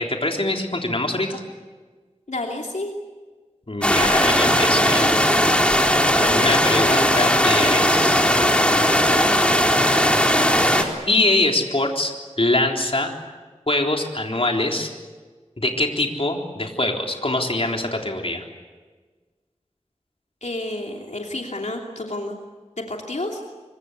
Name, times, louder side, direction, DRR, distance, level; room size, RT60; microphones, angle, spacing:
voice 1, 0.0-1.4 3.7-5.2 6.4-8.3 11.1-13.1 13.7-14.9 15.6-18.4, left 2 dB, 50° left, 2 dB, 3.7 m, -23 dB
voice 2, 2.3-2.9 6.2-6.5 20.4-22.4 22.9-23.4, left 2 dB, 75° left, 1 dB, 2.9 m, -30 dB
sound 1, 3.8-10.8, equal, 10° left, 4.0 m, -18 dB
26.0 x 24.0 x 8.2 m, 1.4 s
wide cardioid pair, 50°, 12 cm